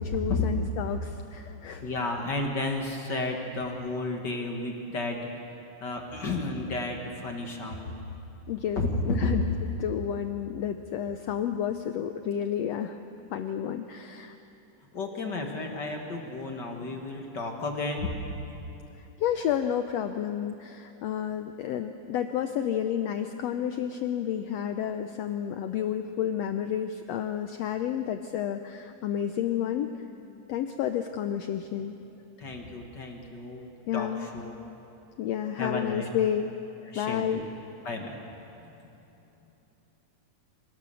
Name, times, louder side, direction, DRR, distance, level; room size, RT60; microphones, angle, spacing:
voice 1, 0.1-1.9 8.5-9.4 9.8-13.0 13.3-14.3 19.0-29.9 30.5-32.0 33.9-34.3 35.2-36.5 36.9-37.4, left 9 dB, 85° left, 7 dB, 1.4 m, -30 dB
voice 2, 1.5-7.9 8.7-9.3 14.9-18.3 32.4-34.6 35.6-36.1 36.9-37.4 37.8-38.2 38.6-38.8, left 2 dB, 45° left, 2 dB, 1.7 m, -32 dB
25.5 x 17.5 x 7.0 m, 2.9 s
omnidirectional pair, 3.8 m